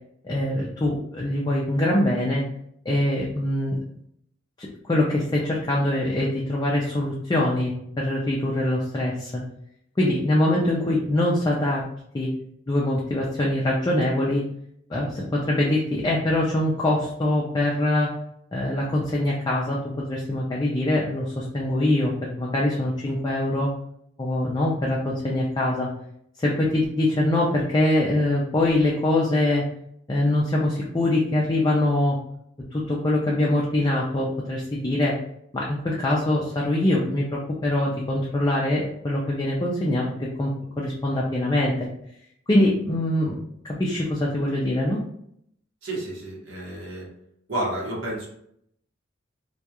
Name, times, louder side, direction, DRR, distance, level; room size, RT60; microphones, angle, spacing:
voice 1, 0.2-2.4 2.9-3.8 4.6-7.7 8.0-9.4 10.0-11.8 12.1-12.3 12.7-14.4 14.9-18.1 18.5-19.8 20.1-22.1 22.4-23.7 24.2-25.9 26.4-29.6 30.1-32.2 32.7-35.1 35.5-40.1 40.4-40.5 40.8-41.9 42.5-43.4 43.6-45.0, left 1 dB, 20° left, -4 dB, 0.3 m, -23 dB
voice 2, 45.8-47.1 47.5-48.3, right 1 dB, 70° right, -4 dB, 0.9 m, -30 dB
2.3 x 2.3 x 2.8 m, 0.71 s
head